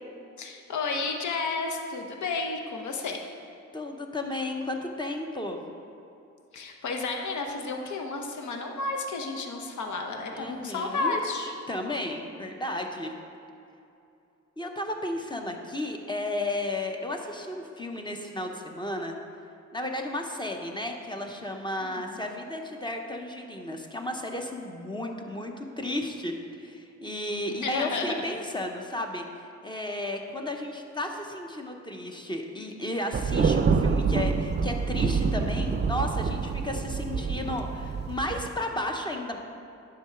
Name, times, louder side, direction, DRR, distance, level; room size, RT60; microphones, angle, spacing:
voice 1, 0.4-3.2 6.5-11.5 21.8-22.2 27.6-28.2, left 3 dB, 85° left, 3 dB, 0.8 m, -32 dB
voice 2, 3.7-5.6 10.3-11.2 11.7-13.1 14.6-19.2 19.7-29.2 29.6-39.4, left 1 dB, 15° left, 3 dB, 0.7 m, -33 dB
Thunder, 33.1-38.5, right 5 dB, 35° right, 0.4 m, -27 dB
10.5 x 3.8 x 5.7 m, 2.7 s
wide cardioid pair, 120°, 29 cm